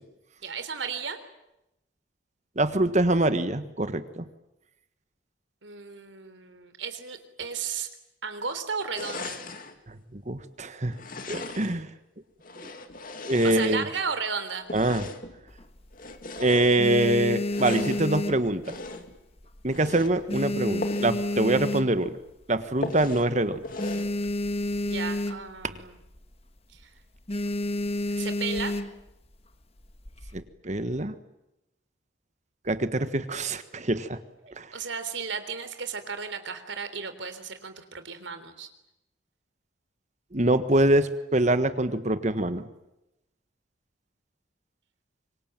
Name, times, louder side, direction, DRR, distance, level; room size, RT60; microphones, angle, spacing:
voice 1, 0.4-1.2 5.6-7.9 8.2-9.4 13.4-14.7 24.8-26.0 26.7-26.8 28.1-28.8 34.7-38.7, right 5 dB, 80° right, 9 dB, 3.6 m, -34 dB
voice 2, 2.6-4.2 9.9-10.9 11.3-11.9 12.6-12.7 13.2-13.9 14.7-15.1 16.4-18.8 19.6-22.1 22.5-23.6 30.3-31.1 32.7-34.2 34.6-34.7 40.3-42.6, right 1 dB, 40° right, 11 dB, 1.5 m, -24 dB
sound 1, 8.9-9.8 10.9-11.8 12.4-14.1 14.6-15.4 15.9-16.8 17.4-18.1 18.6-19.2 19.6-20.1 20.8-21.2 21.5-21.6 22.0-22.1 22.8-23.3 23.6-24.1, left 2 dB, 50° left, 2.4 m, -38 dB
sound 2, 15.5-16.2 16.6-19.1 19.4-19.8 20.1-22.3 22.8-22.9 23.0-23.2 23.5-25.7 26.0-26.3 26.6-26.8 27.3-29.1 29.8-30.4, left 1 dB, 30° left, 1.5 m, -30 dB
26.0 x 24.0 x 9.1 m, 0.89 s
head